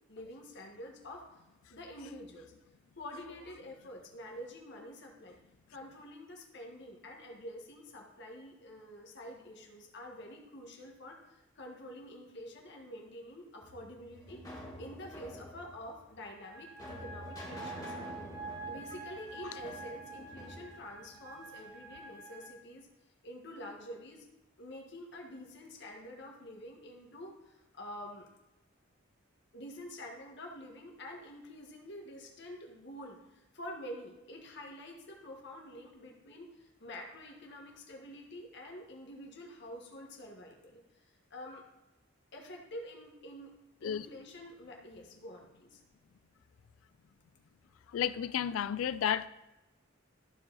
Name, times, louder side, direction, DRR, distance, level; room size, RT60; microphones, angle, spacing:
voice 1, 0.1-1.4 1.7-2.5 3.0-5.4 5.7-11.2 11.5-14.4 14.8-17.9 18.7-22.9 23.2-24.2 24.6-28.3 29.5-41.0 41.3-41.6 42.3-43.5 43.8-45.8, left 1 dB, 60° left, 1 dB, 1.6 m, -47 dB
sound 1, 13.6-21.7, equal, 20° left, 2.3 m, -48 dB
sound 2, 16.3-22.5, right 3 dB, 60° right, 2.8 m, -47 dB
voice 2, 47.9-49.3, left 9 dB, 90° left, 16 dB, 0.4 m, -32 dB
14.0 x 4.8 x 4.0 m, 1.0 s
head